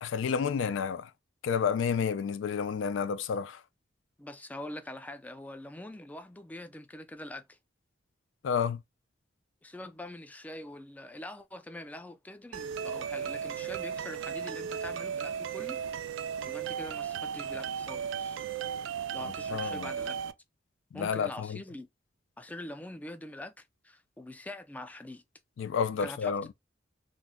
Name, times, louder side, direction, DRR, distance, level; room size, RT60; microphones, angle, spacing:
voice 1, 0.0-1.1 1.4-3.6 8.4-8.8 19.2-19.9 20.9-21.6 25.6-26.5, left 6 dB, 90° left, 0.3 m, -30 dB
voice 2, 4.2-7.6 9.6-15.8 16.5-18.4 19.1-20.2 20.9-21.9 22.4-25.2 26.0-26.4, left 1 dB, 10° left, 0.3 m, -44 dB
sound 1, 12.5-20.3, right 7 dB, 85° right, 0.3 m, -35 dB
2.5 x 2.1 x 3.5 m
head